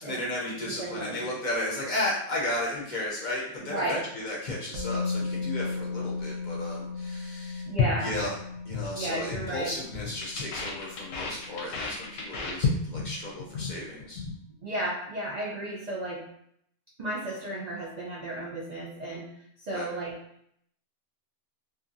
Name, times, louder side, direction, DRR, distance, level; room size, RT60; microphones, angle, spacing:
voice 1, 0.0-7.6 8.0-8.3 8.6-14.2 19.7-19.9, left 1 dB, 50° left, -5 dB, 0.6 m, -34 dB
voice 2, 0.8-1.3 3.6-4.0 7.7-8.1 8.9-9.7 14.6-16.2 17.0-19.3 19.7-20.1, right 2 dB, 65° right, -4 dB, 0.4 m, -33 dB
Musical instrument, 4.7-12.6 12.9-13.1, left 4 dB, 90° right, 1.0 m, -36 dB
sound 1, 7.8-8.9 9.2-9.5 9.8-13.1 13.4-13.7 14.0-14.4, left 5 dB, 90° left, 1.0 m, -31 dB
2.7 x 2.5 x 2.5 m, 0.72 s
omnidirectional pair, 1.3 m